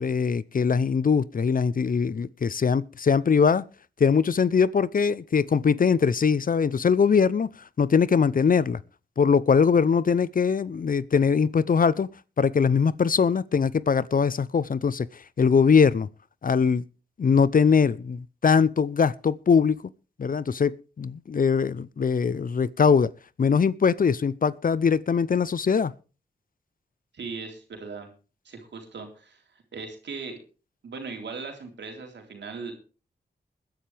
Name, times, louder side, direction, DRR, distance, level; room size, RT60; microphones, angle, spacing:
voice 1, 0.0-3.6 4.0-7.5 7.8-8.8 9.2-12.1 12.4-15.1 15.4-16.1 16.4-16.8 17.2-19.8 20.2-23.1 23.4-25.9, left 6 dB, 50° left, 0.7 m, -22 dB
voice 2, 27.1-28.1 28.5-30.4 30.8-32.7, right 4 dB, 80° right, 3.8 m, -38 dB
21.0 x 10.5 x 3.4 m
cardioid pair, 50°, 18 cm